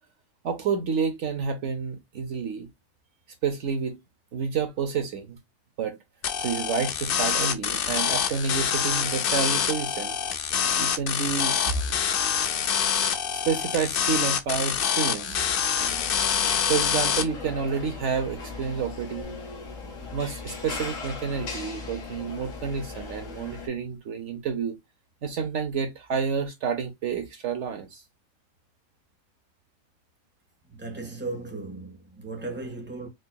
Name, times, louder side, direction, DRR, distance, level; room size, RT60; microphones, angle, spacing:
voice 1, 0.4-2.7 3.4-4.0 4.3-5.4 5.8-6.0 6.4-10.2 10.8-11.8 13.3-15.7 16.7-19.3 20.1-24.8 25.2-28.0, right 6 dB, 65° right, 1.0 m, -29 dB
sound 1, 6.2-17.2, left 8 dB, 60° left, 0.6 m, -26 dB
sound 2, 15.8-23.7, left 4 dB, 75° left, 1.7 m, -38 dB
voice 2, 30.6-33.1, right 3 dB, 10° right, 1.2 m, -36 dB
4.8 x 2.8 x 2.2 m
omnidirectional pair, 1.4 m